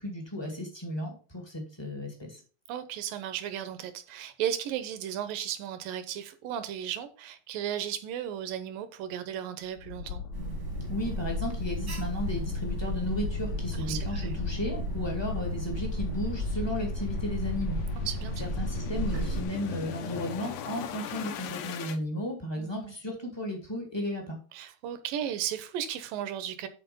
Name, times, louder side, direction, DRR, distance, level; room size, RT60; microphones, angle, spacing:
voice 1, 0.0-2.4 10.9-17.8 18.4-24.4, left 1 dB, 35° left, 1 dB, 0.4 m, -34 dB
voice 2, 2.7-10.2 13.7-14.3 18.0-18.4 22.6-22.9 24.5-26.7, right 10 dB, 75° right, 10 dB, 2.2 m, -35 dB
sound 1, 9.8-22.0, left 7 dB, 80° left, 1.8 m, -38 dB
Alarm, 10.3-19.4, right 1 dB, 50° right, 1.0 m, -34 dB
10.0 x 4.3 x 5.4 m, 0.37 s
omnidirectional pair, 4.6 m